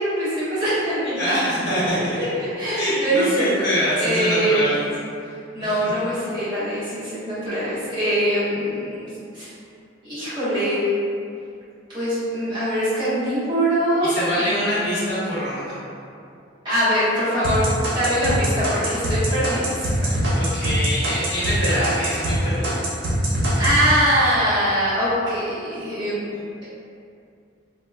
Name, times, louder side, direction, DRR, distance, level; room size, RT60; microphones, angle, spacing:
voice 1, 0.0-1.3 2.1-3.5 4.0-4.7 5.5-9.5 10.0-10.9 11.9-14.1 14.4-15.1 16.6-17.7 17.9-20.1 23.6-26.2, equal, 25° right, -15 dB, 1.3 m, -23 dB
voice 2, 1.2-2.2 2.7-4.8 5.6-5.8 14.0-15.8 20.1-22.8, equal, 75° left, -12 dB, 1.0 m, -25 dB
sound 1, 17.4-22.4 22.6-23.8, right 1 dB, 80° right, 0.7 m, -23 dB
3.3 x 2.2 x 2.3 m, 2.5 s
head